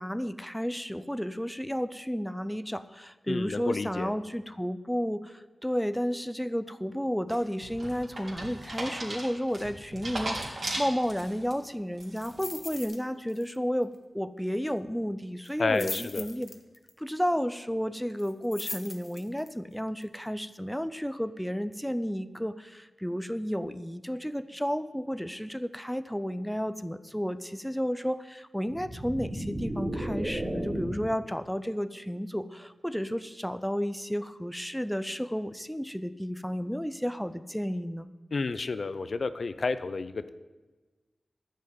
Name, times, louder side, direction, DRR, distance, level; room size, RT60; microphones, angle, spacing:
voice 1, 0.0-16.5 17.0-38.1, equal, ahead, 12 dB, 0.4 m, -32 dB
voice 2, 3.3-4.1 15.6-16.2 38.3-40.3, left 4 dB, 60° left, 13 dB, 0.6 m, -30 dB
sound 1, 7.3-11.5 12.0-12.4, right 1 dB, 50° right, 3.3 m, -36 dB
sound 2, 12.1-13.0 13.3-13.6 13.8-13.9 15.4-16.9 18.2-19.5 20.0-20.1, left 3 dB, 45° left, 1.1 m, -40 dB
sound 3, 28.7-31.2, right 1 dB, 35° right, 3.6 m, -34 dB
13.5 x 5.4 x 9.0 m, 1.2 s
wide cardioid pair, 105°, 0 cm